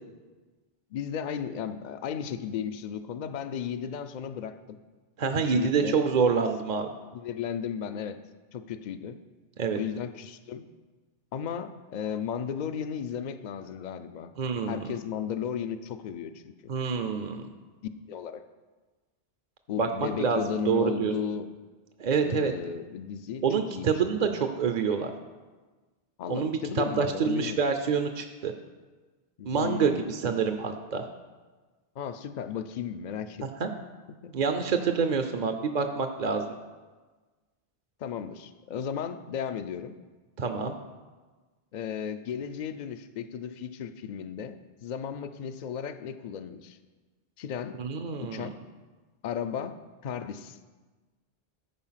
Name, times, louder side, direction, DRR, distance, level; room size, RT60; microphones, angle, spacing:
voice 1, 0.9-4.8 5.4-6.0 7.1-8.2 8.5-9.2 9.8-10.7 11.3-14.3 14.6-16.7 18.1-18.4 19.7-21.5 22.2-23.4 23.7-24.3 26.2-27.6 29.4-30.1 32.0-33.5 34.2-34.4 38.0-40.0 41.7-46.8 47.4-47.8 48.2-48.5 49.2-49.8 50.0-50.6, left 8 dB, 55° left, 11 dB, 0.6 m, -35 dB
voice 2, 5.2-6.9 9.6-9.8 14.4-14.8 16.7-17.4 19.8-20.4 20.7-21.1 22.0-22.5 23.4-25.1 26.3-28.5 29.5-31.1 33.4-33.7 34.3-36.4 40.4-40.8 47.8-48.5, right 5 dB, 50° right, 6 dB, 0.7 m, -27 dB
14.0 x 4.8 x 5.7 m, 1.3 s
omnidirectional pair, 1.0 m